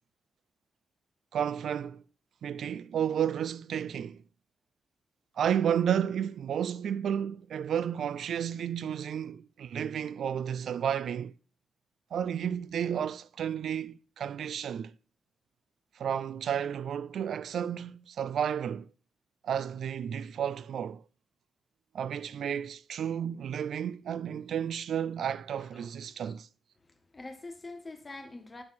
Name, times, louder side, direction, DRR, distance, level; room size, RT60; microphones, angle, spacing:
voice 1, 1.3-2.0 2.4-4.2 5.4-11.3 12.1-14.9 16.0-18.9 19.4-21.0 21.9-26.5, right 9 dB, 85° right, 0.3 m, -32 dB
voice 2, 25.6-26.3 26.9-28.6, left 2 dB, 20° left, 1.3 m, -46 dB
8.6 x 6.4 x 4.1 m
wide cardioid pair, 160°, 0 cm